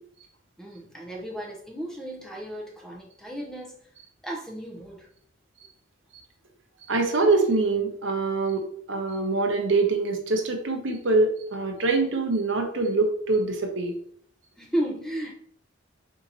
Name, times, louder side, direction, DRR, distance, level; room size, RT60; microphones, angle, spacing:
voice 1, 0.6-3.9 4.2-5.1 14.6-15.3, right 1 dB, 5° left, -1 dB, 0.6 m, -34 dB
voice 2, 6.9-13.9, right 3 dB, 70° right, 3 dB, 0.8 m, -24 dB
3.8 x 2.8 x 4.0 m, 0.62 s
head